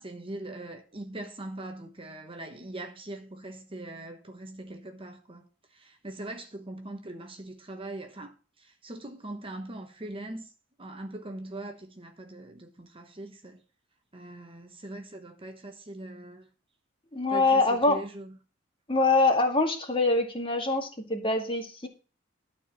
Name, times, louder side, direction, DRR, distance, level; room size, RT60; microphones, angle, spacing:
voice 1, 0.0-5.5 5.7-10.5 10.8-13.6 14.1-16.5 17.3-18.4, right 1 dB, 30° right, 1.1 m, -41 dB
voice 2, 17.1-18.0 18.9-21.9, left 2 dB, 25° left, 2.1 m, -24 dB
12.5 x 4.5 x 7.4 m
head